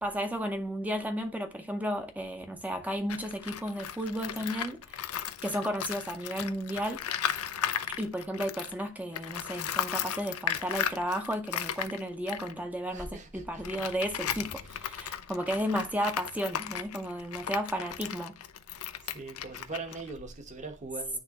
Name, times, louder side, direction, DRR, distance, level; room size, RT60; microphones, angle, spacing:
voice 1, 0.0-7.0 8.0-18.4, equal, 5° right, 0.7 m, -33 dB
Tools, 3.0-8.8 9.1-20.6, left 9 dB, 90° left, 0.6 m, -36 dB
voice 2, 12.9-13.6 14.6-14.8 19.0-21.2, right 3 dB, 35° right, 1.1 m, -41 dB
10.0 x 3.4 x 2.9 m
head